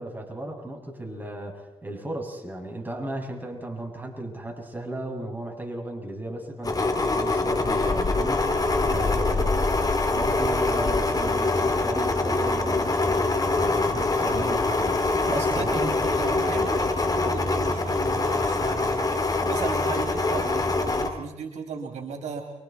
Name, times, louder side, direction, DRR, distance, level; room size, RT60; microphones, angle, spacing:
voice 1, 0.0-15.9, right 1 dB, 15° right, 0 dB, 7.5 m, -35 dB
sound 1, 6.6-21.1, left 3 dB, 30° left, 3.1 m, -24 dB
voice 2, 15.2-22.4, right 5 dB, 80° right, 3 dB, 3.4 m, -36 dB
29.5 x 24.5 x 4.5 m, 0.97 s
cardioid pair, 60°, 12 cm